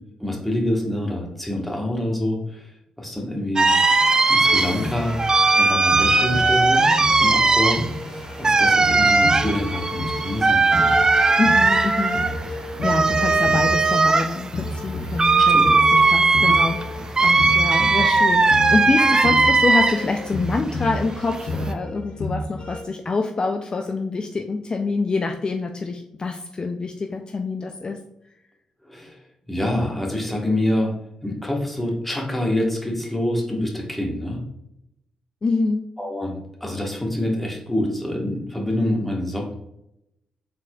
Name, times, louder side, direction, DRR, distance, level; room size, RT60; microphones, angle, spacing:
voice 1, 0.2-2.7 3.0-3.7 4.3-5.2 5.5-6.9 7.2-10.9 15.4-15.7 17.2-17.3 28.8-29.2 29.5-30.9 31.2-34.4 36.0-39.5, left 1 dB, 5° left, 0 dB, 1.3 m, -26 dB
sound 1, 3.6-20.2 20.6-21.7, right 3 dB, 35° right, 0.4 m, -18 dB
sound 2, 4.4-22.8, left 1 dB, 65° left, 0.9 m, -31 dB
voice 2, 11.4-12.2 12.5-28.0 35.4-35.9, left 3 dB, 40° left, 4 dB, 0.4 m, -26 dB
4.3 x 4.1 x 2.3 m, 0.81 s
supercardioid pair, 55°, 2 cm